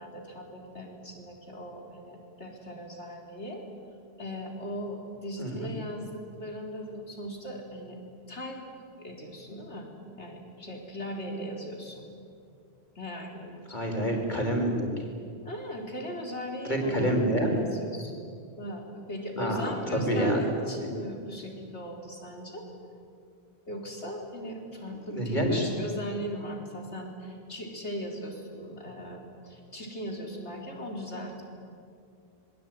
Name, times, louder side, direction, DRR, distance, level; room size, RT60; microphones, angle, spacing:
voice 1, 0.0-3.6 4.2-6.1 6.4-8.0 8.3-8.6 9.0-12.0 12.9-13.9 15.4-18.3 18.6-22.7 23.7-31.4, equal, 85° left, 1 dB, 4.5 m, -38 dB
voice 2, 13.7-14.9 16.6-17.5 19.4-20.4 25.1-25.6, equal, 45° left, 1 dB, 5.0 m, -27 dB
26.0 x 22.0 x 9.3 m, 2.3 s
omnidirectional pair, 1.1 m